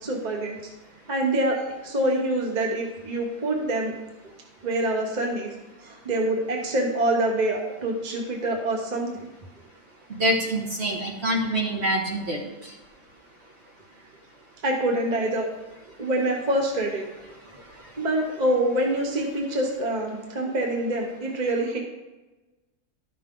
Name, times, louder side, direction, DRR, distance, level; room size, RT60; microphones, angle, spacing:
voice 1, 0.0-0.6 1.1-1.6 1.8-4.0 4.6-5.5 5.8-9.3 14.6-15.5 16.0-17.0 18.0-21.8, right 1 dB, 30° right, 1 dB, 1.2 m, -25 dB
voice 2, 10.1-12.4, equal, 45° right, -1 dB, 1.5 m, -25 dB
12.0 x 6.0 x 3.8 m, 1.1 s
omnidirectional pair, 1.6 m